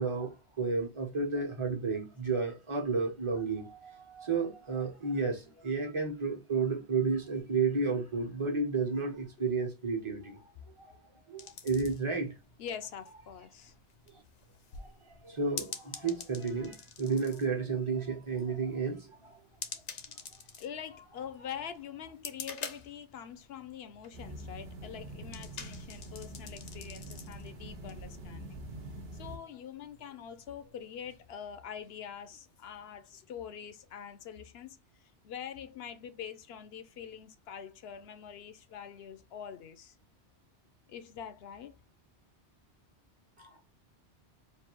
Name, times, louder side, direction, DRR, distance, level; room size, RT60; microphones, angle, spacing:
voice 1, 0.0-10.4 11.3-12.3 14.8-14.9 15.2-19.3 43.4-43.6, right 4 dB, 30° right, 0.9 m, -32 dB
sound 1, 11.4-31.3, left 6 dB, 85° left, 1.1 m, -49 dB
voice 2, 12.6-13.7 20.6-28.6 29.1-34.8 35.2-40.0 40.9-41.7, left 8 dB, 70° left, 0.8 m, -44 dB
sound 2, 24.1-29.4, right 1 dB, 60° right, 1.1 m, -45 dB
3.3 x 2.6 x 4.4 m
omnidirectional pair, 1.2 m